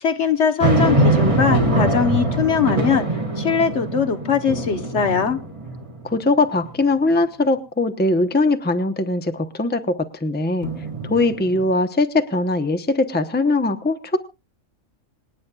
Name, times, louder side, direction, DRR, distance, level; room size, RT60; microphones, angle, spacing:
voice 1, 0.0-3.0 3.4-5.4, left 6 dB, 60° left, 8 dB, 1.3 m, -21 dB
sound 1, 0.6-6.1 6.7-6.8 10.6-11.7, right 1 dB, 25° right, 2.0 m, -22 dB
voice 2, 6.0-10.7 11.0-14.2, left 2 dB, 10° left, 8 dB, 0.8 m, -21 dB
26.5 x 9.5 x 2.4 m, 0.27 s
omnidirectional pair, 1.4 m